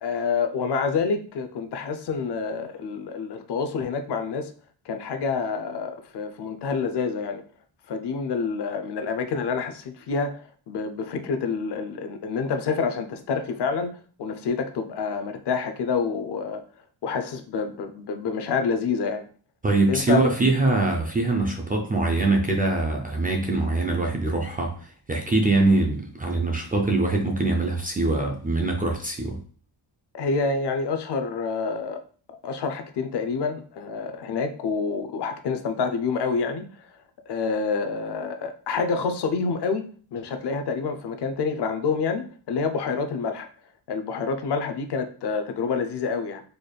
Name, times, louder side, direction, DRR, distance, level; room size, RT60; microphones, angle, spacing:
voice 1, 0.0-4.5 4.9-7.4 7.9-10.4 10.7-16.6 17.0-19.3 19.9-20.3 30.1-32.0 32.4-36.7 37.3-39.8 40.1-43.5 43.9-46.4, left 5 dB, 60° left, 7 dB, 0.5 m, -27 dB
voice 2, 19.6-29.4, right 2 dB, 20° right, 0 dB, 0.3 m, -23 dB
4.1 x 3.2 x 2.3 m, 0.42 s
wide cardioid pair, 155°, 47 cm